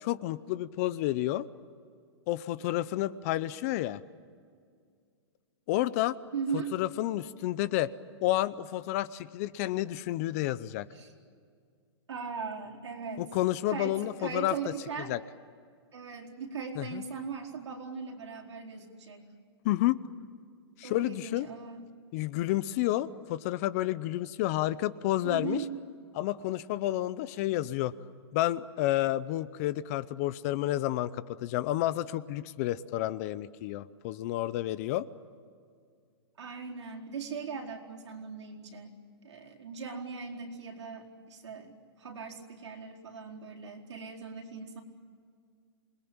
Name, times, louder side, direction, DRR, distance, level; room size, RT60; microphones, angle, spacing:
voice 1, 0.0-1.5 2.3-4.0 5.7-6.2 6.7-7.9 8.2-10.9 13.2-14.6 15.1-15.2 16.8-17.0 19.6-20.0 20.8-21.5 22.1-25.6 26.1-27.9 28.3-35.1, left 15 dB, 35° left, 18 dB, 0.7 m, -30 dB
voice 2, 6.3-6.7 10.9-11.1 12.1-13.2 13.7-15.2 15.9-19.3 20.8-21.8 25.2-25.7 36.4-39.0 39.2-44.8, right 5 dB, 85° right, 0 dB, 4.5 m, -39 dB
27.5 x 21.0 x 8.9 m, 2.2 s
hypercardioid pair, 155°, 14 cm